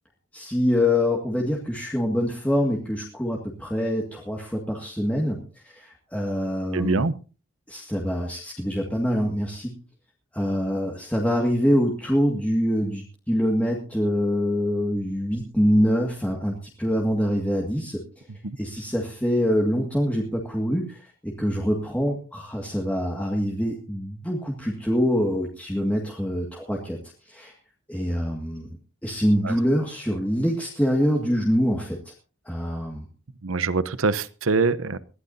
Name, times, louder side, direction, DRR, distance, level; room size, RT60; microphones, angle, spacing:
voice 1, 0.3-7.0 7.7-9.7 10.3-18.3 18.6-27.0 27.2-27.5 27.9-28.7 29.0-32.1 32.5-33.1, equal, 5° left, -1 dB, 1.9 m, -25 dB
voice 2, 6.7-7.1 18.4-18.6 29.4-29.6 33.4-35.0, right 4 dB, 85° right, 15 dB, 0.9 m, -24 dB
21.5 x 15.5 x 2.7 m, 0.35 s
head